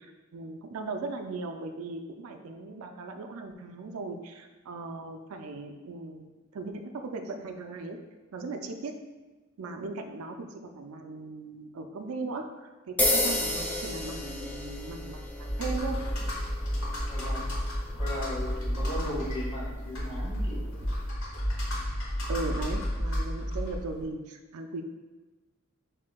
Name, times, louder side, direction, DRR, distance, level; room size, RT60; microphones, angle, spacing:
voice 1, 0.0-8.0 8.3-9.0 9.6-16.0 22.3-24.8, right 3 dB, 85° right, 5 dB, 0.4 m, -38 dB
sound 1, 13.0-21.1, left 1 dB, 10° left, 0.4 m, -34 dB
Computer keyboard, 15.4-24.0, equal, 70° left, 1.4 m, -32 dB
voice 2, 17.1-17.5 18.0-20.8, left 1 dB, 30° left, -6 dB, 1.4 m, -37 dB
7.2 x 2.7 x 2.2 m, 1.2 s
head